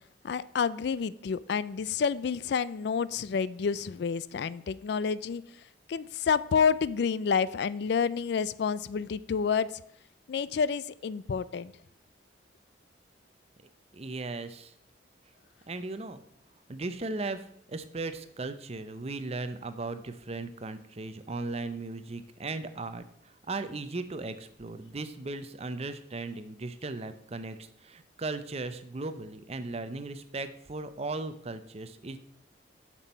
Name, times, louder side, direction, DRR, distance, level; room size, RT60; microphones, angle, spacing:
voice 1, 0.2-5.4 5.9-9.7 10.3-11.7, left 6 dB, 60° left, 18 dB, 0.3 m, -29 dB
voice 2, 13.9-14.7 15.7-16.2 16.7-32.2, right 3 dB, 35° right, 11 dB, 0.6 m, -37 dB
7.2 x 6.1 x 5.5 m, 0.73 s
head